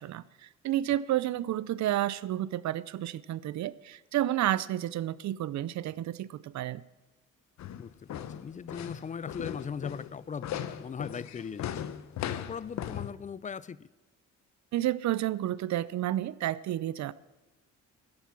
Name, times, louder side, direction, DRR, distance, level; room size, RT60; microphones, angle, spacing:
voice 1, 0.0-6.8 14.7-17.1, right 13 dB, 65° right, 0.6 m, -31 dB
sound 1, 7.6-13.1, left 10 dB, 65° left, 0.8 m, -38 dB
voice 2, 7.8-11.9 12.2-13.9, left 6 dB, 25° left, 0.4 m, -39 dB
13.0 x 10.5 x 5.9 m
cardioid pair, 90°, 30 cm